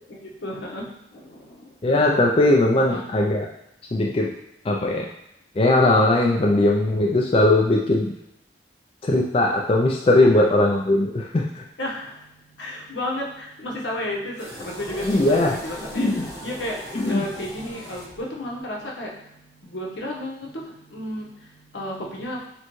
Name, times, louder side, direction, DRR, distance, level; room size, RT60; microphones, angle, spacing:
voice 1, 0.1-1.7 2.7-3.0 10.2-10.5 11.8-12.2 12.6-19.1 19.6-20.6 20.9-21.3 21.7-22.4, left 1 dB, 85° left, -3 dB, 1.0 m, -32 dB
voice 2, 1.8-3.5 3.9-4.3 4.6-5.1 5.6-8.1 9.0-11.6 15.0-15.6 16.0-16.3 16.9-17.2, left 2 dB, 30° left, 0 dB, 0.3 m, -19 dB
sound 1, 14.4-18.6, equal, 15° left, 1.0 m, -39 dB
6.7 x 2.2 x 3.0 m, 0.82 s
head